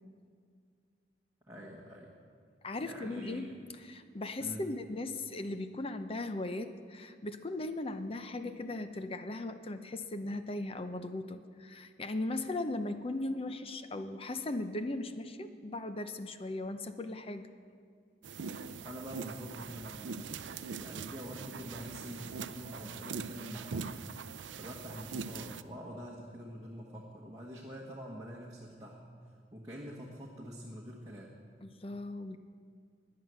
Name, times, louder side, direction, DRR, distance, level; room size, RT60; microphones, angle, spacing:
voice 1, 1.5-2.1 2.8-3.5 4.4-4.7 18.8-20.4 20.8-23.9 24.5-29.0 29.5-31.3, equal, 20° right, -4 dB, 1.4 m, -45 dB
voice 2, 2.6-17.5 31.6-32.4, left 2 dB, 30° left, 9 dB, 0.7 m, -38 dB
sound 1, 18.2-25.6, right 5 dB, 85° right, 0.5 m, -42 dB
16.5 x 10.5 x 6.3 m, 2.1 s
head